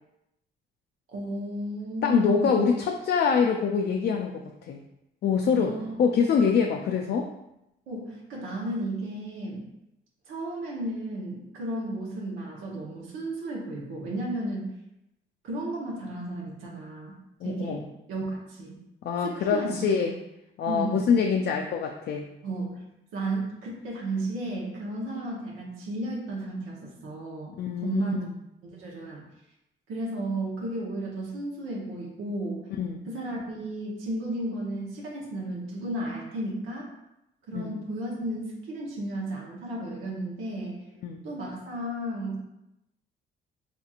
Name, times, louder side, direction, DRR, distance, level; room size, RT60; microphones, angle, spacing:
voice 1, 1.1-2.6 5.6-6.0 7.9-9.6 10.3-14.7 15.4-17.1 17.4-18.8 19.2-19.7 20.7-21.0 22.4-22.8 23.1-28.2 28.6-29.2 29.9-32.7 33.1-36.9 37.5-40.8 41.2-42.4, right 1 dB, 90° right, -3 dB, 1.0 m, -33 dB
voice 2, 2.0-4.8 5.2-7.3 17.4-17.8 19.0-20.1 20.6-22.3 27.6-28.3 32.8-33.1 37.5-37.8 41.0-41.2, left 6 dB, 55° left, 3 dB, 0.4 m, -25 dB
4.1 x 2.9 x 2.4 m, 0.88 s
cardioid pair, 90°, 20 cm